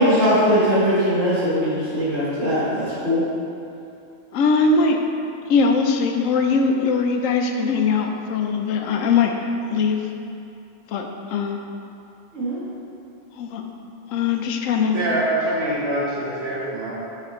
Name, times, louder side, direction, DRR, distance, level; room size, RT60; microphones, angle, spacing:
voice 1, 0.0-3.2 12.3-12.6, equal, 80° right, -12 dB, 2.1 m, -20 dB
voice 2, 4.3-5.0 5.5-10.0 10.9-11.6 13.4-13.6 14.1-15.0, left 4 dB, 85° left, 3 dB, 1.0 m, -21 dB
voice 3, 14.9-16.9, right 1 dB, 55° right, -9 dB, 1.2 m, -24 dB
6.6 x 5.7 x 3.1 m, 2.7 s
omnidirectional pair, 1.3 m